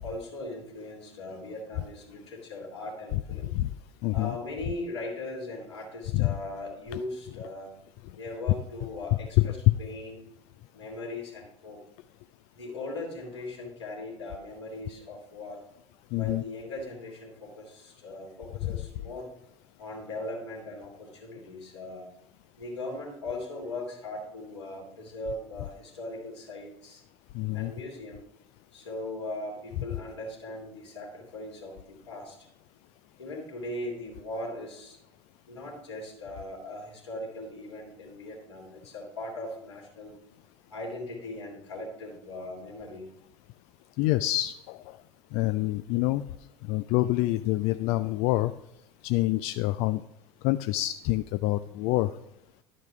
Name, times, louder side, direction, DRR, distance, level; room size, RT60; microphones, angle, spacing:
voice 1, 0.0-3.6 4.1-7.7 8.2-10.3 10.7-11.8 12.5-15.6 16.1-19.3 19.8-22.1 22.6-27.0 27.5-28.2 28.7-32.4 33.2-35.0 35.5-40.1 40.7-43.1, left 2 dB, 75° left, -2 dB, 2.8 m, -39 dB
voice 2, 4.0-4.4 6.1-6.3 9.7-9.8 16.1-16.4 18.6-18.8 27.3-27.7 44.0-45.0 45.3-46.2 46.7-48.5 49.0-50.0 50.4-52.1, left 17 dB, 50° left, 12 dB, 0.4 m, -26 dB
12.0 x 5.1 x 5.7 m, 0.83 s
figure-of-eight pair, 70°, 14 cm